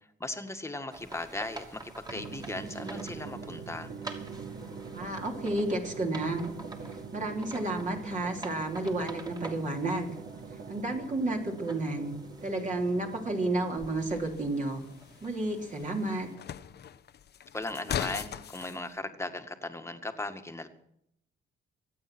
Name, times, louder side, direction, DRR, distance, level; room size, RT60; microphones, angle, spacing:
voice 1, 0.2-3.9 17.5-20.7, left 2 dB, 15° left, 7 dB, 1.9 m, -37 dB
sound 1, 0.9-16.4, right 2 dB, 20° right, 3.1 m, -49 dB
Drum, 2.1-14.4, right 5 dB, 55° right, 3.1 m, -44 dB
voice 2, 4.9-6.4 7.1-10.1 10.7-12.1 12.4-14.8 15.2-16.3, right 2 dB, 40° right, 1 dB, 3.4 m, -31 dB
sound 2, 13.8-18.8, left 9 dB, 55° left, 0.9 m, -40 dB
24.5 x 9.0 x 6.2 m, 0.76 s
cardioid pair, 90°, 20 cm